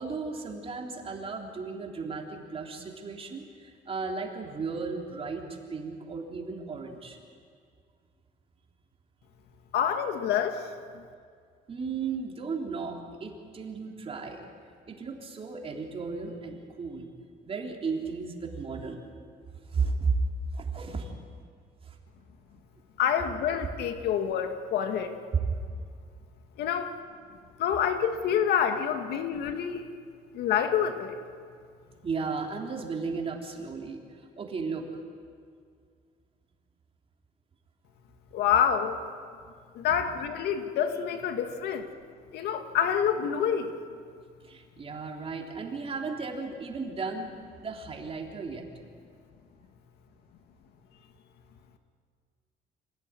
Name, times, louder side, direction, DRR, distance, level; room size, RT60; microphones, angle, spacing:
voice 1, 0.0-7.2 11.7-14.5 14.9-17.1 17.4-19.1 19.5-20.2 20.5-21.2 21.8-22.0 25.4-25.5 32.0-34.0 34.4-34.9 39.9-40.0 44.4-48.7, right 4 dB, 35° right, 1 dB, 3.6 m, -35 dB
voice 2, 9.7-10.7 23.0-25.1 26.6-26.9 27.6-29.8 30.3-31.2 38.3-39.0 39.7-41.9 42.3-43.7, left 8 dB, 75° left, 7 dB, 2.1 m, -27 dB
25.5 x 17.0 x 9.7 m, 2.1 s
cardioid pair, 110°, 17 cm